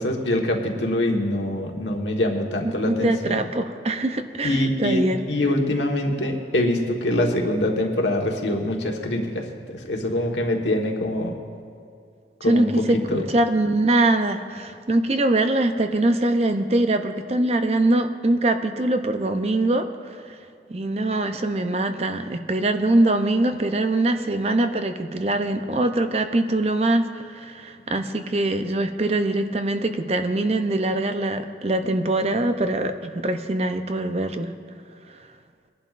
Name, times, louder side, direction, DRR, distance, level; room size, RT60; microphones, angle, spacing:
voice 1, 0.0-3.4 4.4-11.4 12.4-13.2, left 1 dB, 90° left, 1 dB, 1.4 m, -24 dB
voice 2, 2.8-5.2 12.4-19.9 20.7-34.5, right 2 dB, 35° right, 8 dB, 0.6 m, -23 dB
22.0 x 11.0 x 2.5 m, 2.3 s
head